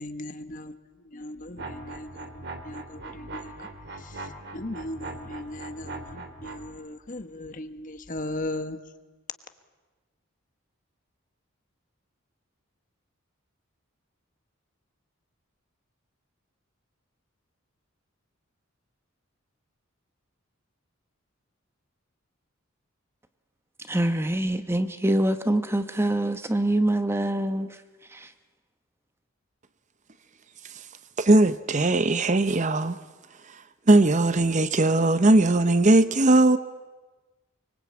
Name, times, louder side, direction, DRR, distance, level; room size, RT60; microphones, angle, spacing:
voice 1, 0.0-8.8, left 1 dB, 40° left, 1.3 m, -38 dB
sound 1, 1.6-6.7, right 2 dB, 55° right, 3.1 m, -40 dB
voice 2, 23.8-28.3, right 1 dB, 10° right, 0.9 m, -25 dB
voice 3, 31.2-33.0 33.9-36.6, right 2 dB, 35° right, 0.8 m, -19 dB
25.0 x 24.5 x 8.6 m
head